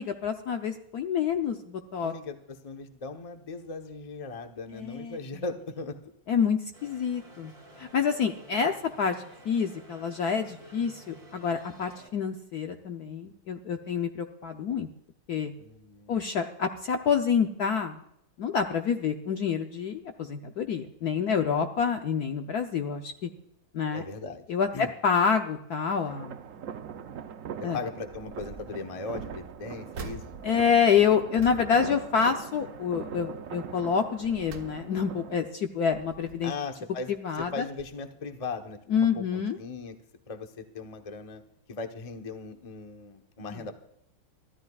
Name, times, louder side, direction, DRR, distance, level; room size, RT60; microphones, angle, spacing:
voice 1, 0.0-2.1 4.7-5.4 6.3-7.5 7.8-9.2 9.4-14.9 15.3-15.5 16.1-18.0 18.4-23.3 23.7-24.0 24.5-26.4 27.6-27.8 30.4-36.5 37.1-37.6 38.9-39.6 43.5-43.6, left 6 dB, 60° left, 5 dB, 1.1 m, -27 dB
voice 2, 2.0-6.0 15.6-16.2 23.9-24.4 24.7-24.9 27.7-30.2 36.4-37.1 37.5-39.9 40.3-41.4 41.7-43.7, left 4 dB, 25° left, 5 dB, 0.7 m, -38 dB
sound 1, 6.7-12.1, right 1 dB, 25° right, 3.5 m, -51 dB
sound 2, 26.1-35.4, right 8 dB, 70° right, 0.7 m, -42 dB
sound 3, 28.1-28.7 29.1-32.8 33.2-33.5 34.0-35.2 35.7-36.7 37.4-37.5 37.8-37.9, right 4 dB, 50° right, 1.4 m, -46 dB
23.0 x 14.5 x 2.4 m, 0.78 s
omnidirectional pair, 2.3 m